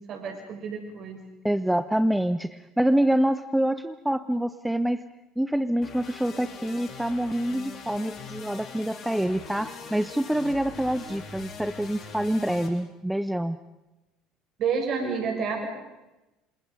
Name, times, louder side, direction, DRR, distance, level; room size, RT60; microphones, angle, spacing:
voice 1, 0.1-1.2 14.6-15.7, right 5 dB, 45° right, 2 dB, 7.0 m, -29 dB
voice 2, 1.4-5.0 5.4-13.6, right 1 dB, 5° right, 13 dB, 0.9 m, -26 dB
sound 1, 5.8-12.7, left 5 dB, 35° left, 6.8 m, -42 dB
28.0 x 27.5 x 5.5 m, 1.0 s
figure-of-eight pair, 60°, 0 cm